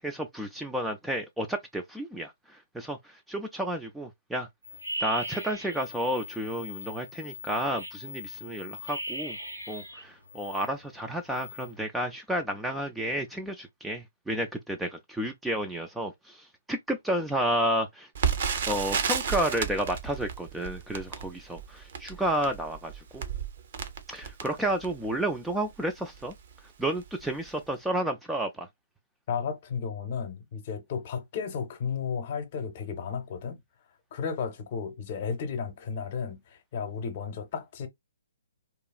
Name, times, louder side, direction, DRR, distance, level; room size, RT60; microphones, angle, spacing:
voice 1, 0.0-4.5 5.0-9.4 9.7-18.1 18.7-23.2 24.1-26.3 26.8-28.7, right 1 dB, 5° right, 0.3 m, -31 dB
sound 1, 4.6-10.7 11.1-11.7, equal, 85° right, 1.5 m, -39 dB
Crackle, 18.2-25.1 25.7-25.8 26.1-26.4 27.0-27.2 27.5-27.6, right 7 dB, 50° right, 0.6 m, -32 dB
voice 2, 29.3-33.6 34.1-37.9, left 6 dB, 40° left, 0.7 m, -33 dB
2.9 x 2.3 x 2.2 m
figure-of-eight pair, 130°, 0 cm